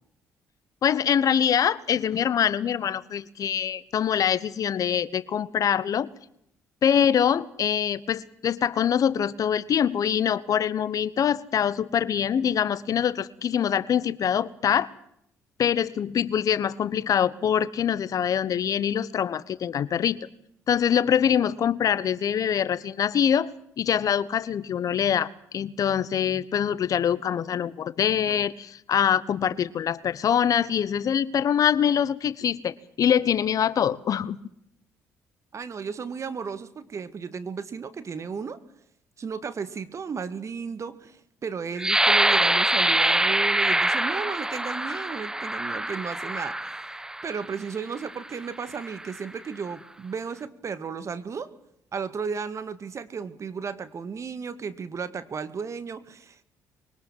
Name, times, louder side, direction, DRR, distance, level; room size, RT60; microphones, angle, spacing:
voice 1, 0.8-6.1 6.8-14.9 15.6-20.2 20.7-23.5 23.8-34.4, left 8 dB, 60° left, 18 dB, 1.1 m, -24 dB
voice 2, 35.5-38.6 39.2-46.6 47.2-51.5 51.9-56.4, right 6 dB, 45° right, 13 dB, 2.1 m, -34 dB
sound 1, 41.8-47.4 48.1-48.3 48.7-49.2, right 1 dB, 10° right, 0.8 m, -24 dB
23.0 x 19.0 x 7.6 m, 0.74 s
supercardioid pair, 60°, 7 cm